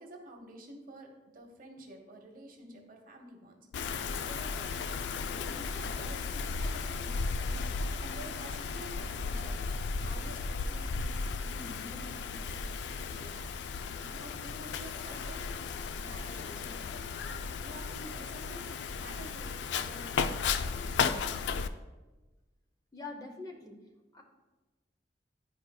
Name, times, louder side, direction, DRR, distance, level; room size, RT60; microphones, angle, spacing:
voice 1, 0.0-4.8 5.3-7.6 8.0-9.6 10.0-12.7 12.9-15.4 16.0-17.0 17.5-18.6 19.0-21.4, right 1 dB, 55° right, 2 dB, 0.9 m, -50 dB
Wind, 3.7-21.7, left 5 dB, 75° left, 0.3 m, -35 dB
voice 2, 22.9-23.8 24.1-24.2, left 3 dB, 20° left, 2 dB, 0.7 m, -43 dB
10.5 x 4.7 x 2.2 m, 1.2 s
head